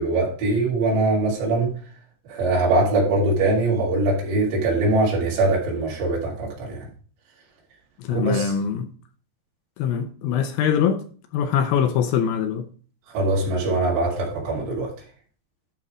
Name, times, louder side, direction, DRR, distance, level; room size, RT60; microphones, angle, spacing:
voice 1, 0.0-1.7 2.3-6.9 8.1-8.5 13.1-14.9, right 2 dB, 85° right, 5.0 m, -22 dB
voice 2, 8.0-8.9 9.8-11.0 11.3-12.7, left 8 dB, 75° left, 2.3 m, -23 dB
12.0 x 4.1 x 4.9 m
omnidirectional pair, 4.9 m